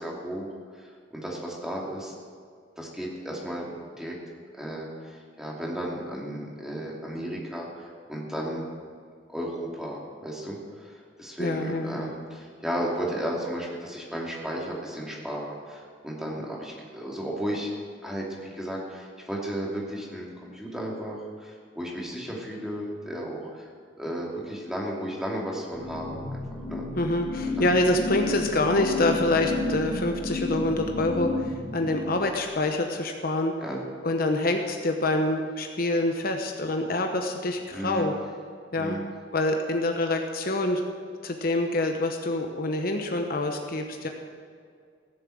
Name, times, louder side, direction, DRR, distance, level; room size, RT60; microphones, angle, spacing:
voice 1, 0.0-2.1 2.8-4.1 4.6-8.6 9.3-10.9 11.2-17.7 18.0-23.7 24.0-26.2 26.7-26.8 27.4-27.6 33.6-33.8 37.7-38.2 38.8-39.1, equal, 5° right, -3 dB, 2.7 m, -34 dB
voice 2, 11.4-12.1 27.0-33.5 34.0-38.1 38.7-39.0 39.3-40.8 41.2-44.1, left 2 dB, 55° left, 4 dB, 1.1 m, -26 dB
sound 1, 25.7-32.4, left 2 dB, 35° left, 3.1 m, -32 dB
16.5 x 7.7 x 7.9 m, 2.1 s
head